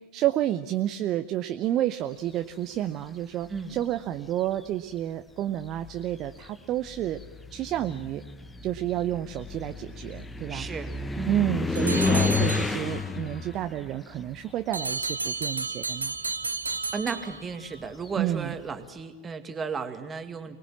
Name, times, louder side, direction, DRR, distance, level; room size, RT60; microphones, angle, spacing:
voice 1, 0.1-7.2 7.5-8.2 8.6-10.7 11.3-16.1 18.2-18.5, right 12 dB, 35° right, 9 dB, 0.8 m, -30 dB
sound 1, 3.4-4.0 5.0-5.1 5.6-15.5 15.8-18.5, left 4 dB, 10° left, 1.2 m, -31 dB
voice 2, 10.5-11.4 16.9-20.6, right 5 dB, 20° right, 8 dB, 2.0 m, -34 dB
sound 2, 11.7-13.1 14.7-17.7, right 3 dB, 80° right, 0.7 m, -32 dB
24.0 x 20.0 x 7.4 m, 1.4 s
figure-of-eight pair, 90°, 0 cm